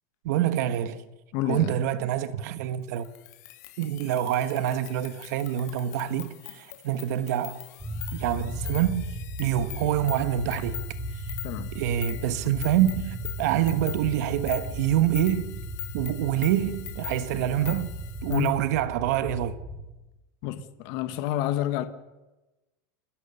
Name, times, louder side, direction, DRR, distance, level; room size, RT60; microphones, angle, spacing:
voice 1, 0.2-1.0 1.5-3.0 3.8-7.6 8.1-10.8 11.7-15.6 15.9-17.9 18.2-19.5, right 11 dB, 55° right, 1.3 m, -26 dB
voice 2, 1.3-1.8 11.4-11.7 18.3-18.5 20.4-21.8, left 13 dB, 40° left, 1.4 m, -28 dB
sound 1, 3.0-18.6, left 17 dB, 55° left, 2.3 m, -42 dB
sound 2, 7.8-19.9, right 1 dB, ahead, 3.0 m, -36 dB
29.0 x 16.5 x 6.9 m
supercardioid pair, 180°, 10 cm